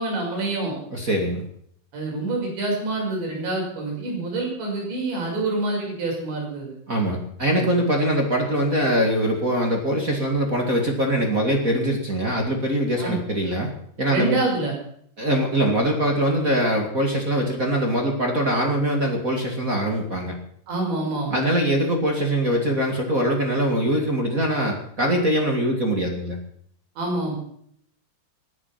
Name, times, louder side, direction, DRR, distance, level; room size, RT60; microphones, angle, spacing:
voice 1, 0.0-0.8 1.9-6.7 7.6-7.7 13.0-13.2 14.1-14.7 20.7-21.4 27.0-27.4, right 2 dB, 85° right, 0 dB, 8.6 m, -26 dB
voice 2, 0.9-1.4 6.9-13.7 14.0-14.4 15.2-20.3 21.3-26.4, right 1 dB, 30° right, 2 dB, 1.5 m, -22 dB
19.5 x 11.5 x 5.8 m, 0.65 s
omnidirectional pair, 5.0 m